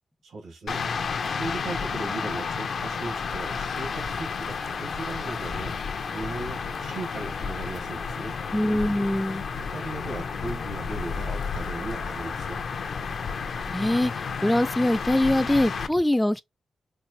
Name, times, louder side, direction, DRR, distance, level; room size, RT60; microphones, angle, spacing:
voice 1, 0.2-8.5 9.7-12.6, right 2 dB, 90° right, 1.5 m, -37 dB
sound 1, 0.7-15.9, left 5 dB, 70° left, 0.6 m, -31 dB
voice 2, 8.5-9.4 13.7-14.1 14.4-16.4, left 1 dB, 10° left, 0.3 m, -23 dB
4.5 x 2.2 x 2.9 m
cardioid pair, 70°, 0 cm